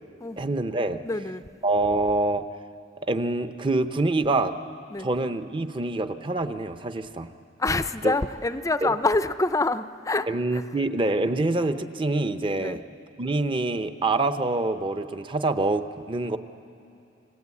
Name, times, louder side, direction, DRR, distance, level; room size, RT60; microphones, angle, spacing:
voice 1, 0.4-1.0 1.6-2.4 3.0-4.5 5.0-7.3 8.0-8.1 8.8-8.9 10.3-12.8 13.2-16.4, right 2 dB, 25° right, 9 dB, 0.7 m, -26 dB
voice 2, 1.0-1.4 4.9-5.1 7.6-10.3 10.5-10.6 12.6-12.8, left 2 dB, 15° left, 12 dB, 0.5 m, -26 dB
29.5 x 17.0 x 8.5 m, 2.7 s
head